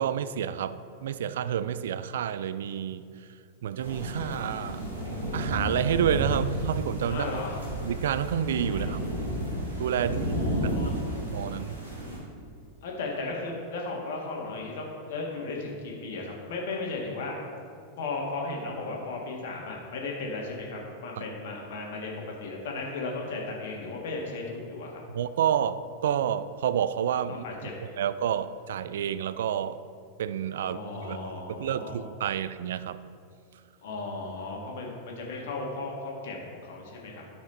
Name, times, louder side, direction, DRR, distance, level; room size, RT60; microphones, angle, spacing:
voice 1, 0.0-3.1 3.6-4.8 5.3-7.3 7.8-9.0 9.8-10.2 10.6-11.0 11.3-11.8 21.2-21.3 25.1-27.4 28.0-29.8 30.2-33.0, right 9 dB, 60° right, 14 dB, 0.3 m, -29 dB
sound 1, 3.8-12.2, equal, 75° right, 2.3 m, -32 dB
voice 2, 7.1-7.6 8.7-9.0 10.0-11.0 12.8-17.4 18.0-22.1 22.4-25.0 27.3-27.7 30.6-32.0 33.8-37.2, left 3 dB, 55° left, -1 dB, 1.7 m, -35 dB
10.5 x 6.2 x 4.0 m, 2.3 s
figure-of-eight pair, 90°, 0 cm